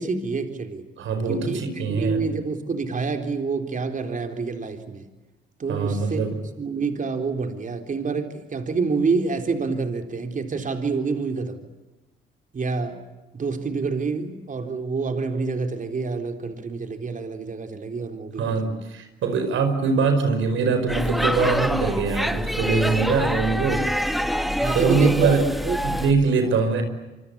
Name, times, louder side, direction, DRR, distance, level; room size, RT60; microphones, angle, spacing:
voice 1, 0.0-0.8 1.3-1.6 1.9-5.0 5.6-6.2 6.6-11.6 12.5-13.0 13.3-18.8 24.6-25.4 25.6-25.8, right 4 dB, 40° right, 6 dB, 3.9 m, -27 dB
voice 2, 1.0-2.3 5.7-6.4 18.4-23.9 24.7-25.5 25.8-26.8, right 4 dB, 75° right, 8 dB, 5.2 m, -23 dB
Speech / Shout / Subway metro underground, 20.9-26.1, equal, ahead, 2.3 m, -25 dB
27.0 x 25.0 x 8.5 m, 1.1 s
cardioid pair, 90°, 20 cm